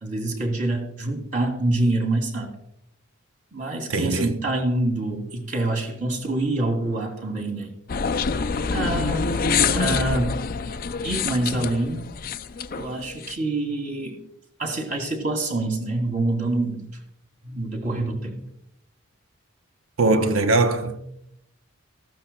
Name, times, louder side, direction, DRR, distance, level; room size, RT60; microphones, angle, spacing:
voice 1, 0.0-2.6 3.5-7.7 8.6-10.4 11.0-12.1 12.8-14.2 14.6-16.9 17.4-18.4, right 2 dB, 40° right, 2.3 m, -26 dB
voice 2, 3.9-4.3 20.0-21.1, right 2 dB, 80° right, 0.9 m, -21 dB
sound 1, 7.9-13.3, left 5 dB, 45° left, 0.4 m, -26 dB
14.5 x 12.0 x 2.3 m
head